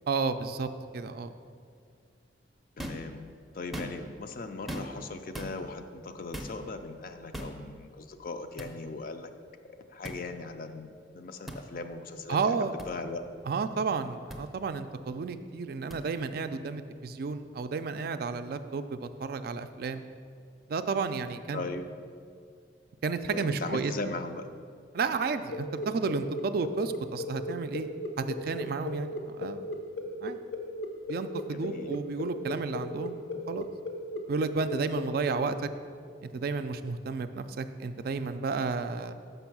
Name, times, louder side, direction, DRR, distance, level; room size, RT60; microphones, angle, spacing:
voice 1, 0.1-1.3 12.3-12.7 13.5-20.0 20.7-21.7 23.0-23.9 24.9-27.9 28.2-29.7 30.2-30.4 31.1-33.2 33.5-33.7 34.3-35.7 36.2-39.1, right 4 dB, 55° right, 10 dB, 0.3 m, -32 dB
voice 2, 2.8-3.2 3.5-9.3 9.7-13.2 21.5-21.9 23.3-24.5 31.5-32.0, left 3 dB, 50° left, 8 dB, 0.5 m, -39 dB
sound 1, 2.8-3.1 3.6-4.2 4.7-5.0 5.3-5.5 6.3-6.6 7.3-7.6 8.6-8.7 10.0-10.2 11.5-11.6 12.8-12.9 14.3-14.4 15.9-16.0, equal, ahead, 0.5 m, -38 dB
sound 2, 25.5-35.3, left 1 dB, 80° left, 0.9 m, -37 dB
6.1 x 5.5 x 5.9 m, 2.2 s
head